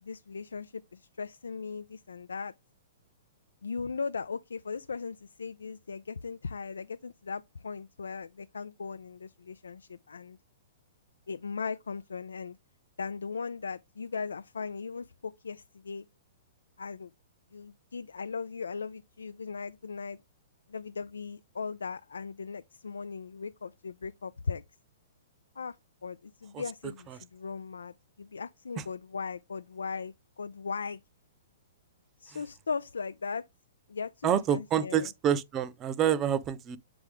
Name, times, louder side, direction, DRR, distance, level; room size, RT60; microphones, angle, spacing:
voice 1, 0.0-2.5 3.6-10.4 11.3-12.6 13.0-16.1 16.8-17.1 17.5-20.2 20.7-24.6 25.6-25.8 26.0-31.0 32.2-33.4 33.9-35.1, left 5 dB, 80° left, 0.3 m, -38 dB
voice 2, 34.2-36.8, right 9 dB, 25° right, 0.6 m, -28 dB
8.1 x 3.5 x 3.5 m
hypercardioid pair, 120°, 0 cm